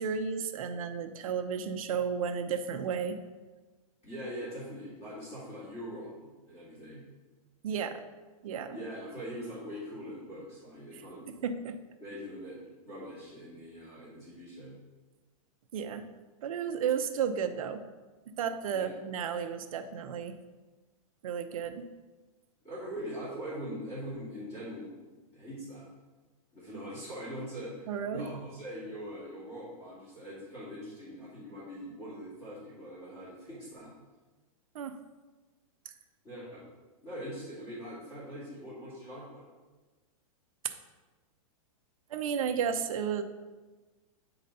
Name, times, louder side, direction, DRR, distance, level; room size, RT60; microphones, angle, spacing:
voice 1, 0.0-3.2 7.6-8.0 8.4-8.8 11.3-11.8 15.7-16.1 16.4-17.8 18.4-20.3 21.2-21.8 27.9-28.3 34.7-34.9 42.1-43.2, right 7 dB, 70° right, 8 dB, 0.7 m, -33 dB
voice 2, 4.0-7.0 8.7-11.3 12.0-12.6 12.8-14.8 18.7-18.9 22.6-25.0 25.3-25.9 26.5-33.9 36.2-36.6 37.0-39.5, equal, 20° left, -10 dB, 2.3 m, -42 dB
8.5 x 4.0 x 4.0 m, 1.3 s
supercardioid pair, 155°, 19 cm